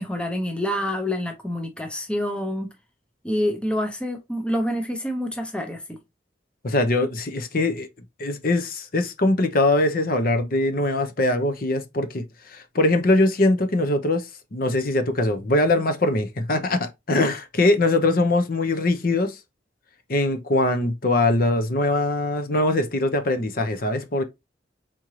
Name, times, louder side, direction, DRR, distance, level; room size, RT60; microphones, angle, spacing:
voice 1, 0.0-2.7 3.2-6.0, equal, 5° left, 0.6 m, -27 dB
voice 2, 6.6-7.9 8.2-14.3 14.5-19.4 20.1-24.2, left 2 dB, 50° left, 0.7 m, -22 dB
4.3 x 3.8 x 3.1 m
head